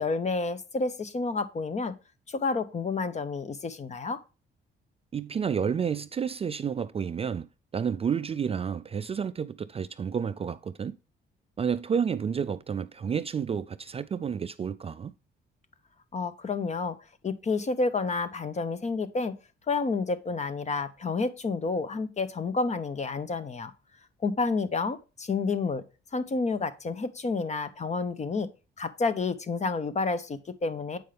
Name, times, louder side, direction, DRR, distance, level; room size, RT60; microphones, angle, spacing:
voice 1, 0.0-1.9 2.3-4.2 16.1-17.0 17.2-19.3 19.7-23.7 24.2-25.8 26.1-28.5 28.8-31.0, left 4 dB, 35° left, 0.9 m, -29 dB
voice 2, 5.1-7.5 7.7-11.0 11.6-15.1, right 7 dB, 30° right, 0.3 m, -30 dB
7.8 x 5.4 x 3.3 m
cardioid pair, 90°, 20 cm